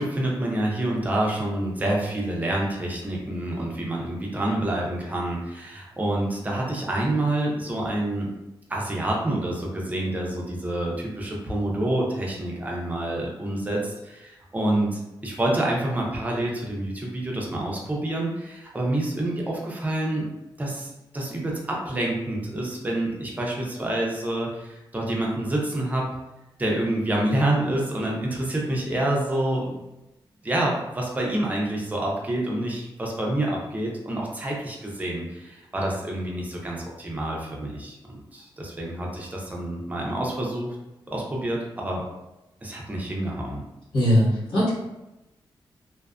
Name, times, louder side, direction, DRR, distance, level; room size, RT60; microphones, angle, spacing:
voice 1, 0.0-8.3 8.7-20.3 20.6-26.1 26.6-29.8 30.4-40.8 41.1-42.0 42.6-43.6, right 1 dB, 15° right, -2 dB, 0.5 m, -27 dB
voice 2, 43.9-44.7, equal, 75° left, -12 dB, 1.2 m, -20 dB
2.5 x 2.4 x 2.3 m, 0.96 s
wide cardioid pair, 150°, 9 cm